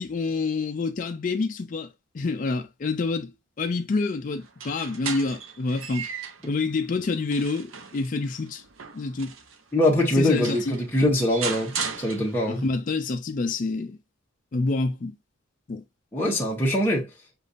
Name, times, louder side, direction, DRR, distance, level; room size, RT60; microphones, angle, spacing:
voice 1, 0.0-1.9 2.1-3.3 3.6-6.1 6.5-8.6 8.9-9.3 10.1-10.8 12.5-14.0 14.5-15.1 15.7-15.8, left 3 dB, 40° left, 0.4 m, -27 dB
sound 1, 4.4-6.5 7.0-9.6 10.1-10.2 10.4-12.7, right 6 dB, 75° right, 0.7 m, -36 dB
voice 2, 9.7-12.6 16.1-17.1, left 1 dB, 10° left, 1.0 m, -23 dB
6.6 x 2.5 x 2.5 m
head